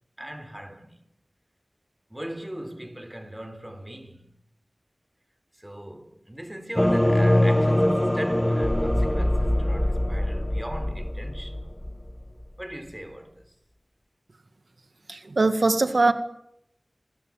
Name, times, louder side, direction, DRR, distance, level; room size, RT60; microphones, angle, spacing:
voice 1, 0.2-1.0 2.1-4.3 5.5-11.6 12.6-13.4, right 1 dB, 15° right, 3.9 m, -39 dB
sound 1, 6.8-12.4, left 1 dB, 10° left, 1.7 m, -23 dB
voice 2, 15.1-16.1, right 3 dB, 75° right, 1.9 m, -21 dB
28.0 x 21.5 x 9.1 m
wide cardioid pair, 50°, 0 cm